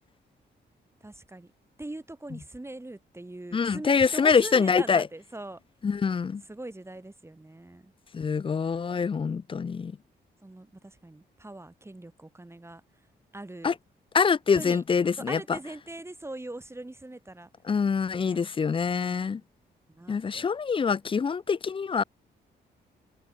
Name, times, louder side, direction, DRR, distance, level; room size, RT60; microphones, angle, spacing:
voice 1, 1.0-1.5 1.8-5.6 6.5-7.9 10.4-12.8 13.3-13.8 14.5-14.8 15.2-17.5 18.2-18.5 18.9-19.4 19.9-20.5, right 2 dB, 15° right, 3.4 m, -42 dB
voice 2, 3.5-5.1 5.8-6.4 8.1-10.0 13.6-13.7 14.1-15.6 17.7-19.4 20.1-22.0, left 5 dB, 30° left, 0.4 m, -25 dB
cardioid pair, 80°, 19 cm